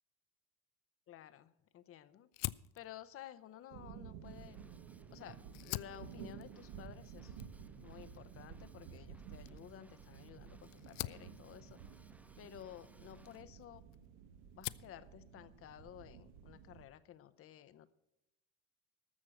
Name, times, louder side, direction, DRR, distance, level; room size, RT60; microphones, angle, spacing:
voice 1, 1.1-2.3 2.7-4.6 5.1-7.4 7.8-13.8 14.5-17.9, left 11 dB, 45° left, 15 dB, 0.7 m, -54 dB
Fire, 2.3-5.0 5.4-14.1 14.4-15.0, left 20 dB, 70° left, 0.5 m, -48 dB
sound 1, 3.7-16.9, right 8 dB, 75° right, 1.1 m, -53 dB
Drum kit / Drum, 4.2-13.4, right 2 dB, 5° right, 0.3 m, -64 dB
13.5 x 6.4 x 7.4 m, 0.88 s
cardioid pair, 125°, 33 cm